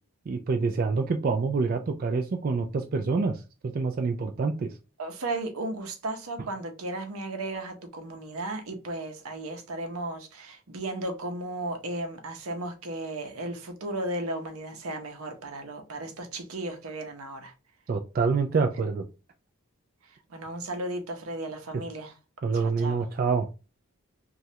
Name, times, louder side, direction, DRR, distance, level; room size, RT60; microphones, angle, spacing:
voice 1, 0.3-3.4 3.7-4.7 17.9-19.0 22.4-23.5, right 4 dB, 40° right, 0.3 m, -26 dB
voice 2, 5.0-17.5 20.0-22.1 22.5-23.0, right 2 dB, 85° right, 0.7 m, -35 dB
3.1 x 2.4 x 2.7 m
head